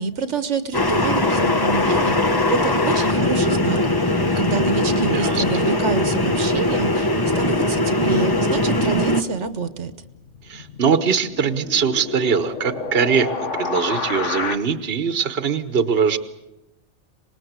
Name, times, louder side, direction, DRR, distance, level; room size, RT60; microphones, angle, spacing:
voice 1, 0.0-3.8 4.1-9.9, right 5 dB, 75° right, 11 dB, 1.4 m, -27 dB
sound 1, 0.7-9.2, left 1 dB, 20° left, 1.0 m, -20 dB
sound 2, 1.2-8.4 8.7-8.8 9.2-14.6, left 4 dB, 90° left, 1.8 m, -32 dB
voice 2, 5.1-5.4 10.5-16.2, right 6 dB, 55° right, 11 dB, 1.3 m, -22 dB
25.0 x 20.5 x 8.1 m, 0.96 s
omnidirectional pair, 1.2 m